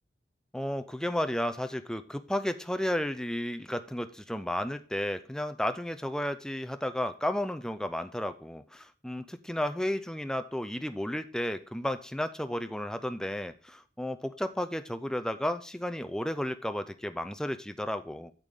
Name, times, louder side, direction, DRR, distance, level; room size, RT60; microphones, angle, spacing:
voice 1, 0.5-18.3, left 1 dB, 5° left, 10 dB, 0.5 m, -33 dB
8.8 x 8.2 x 3.6 m, 0.38 s
head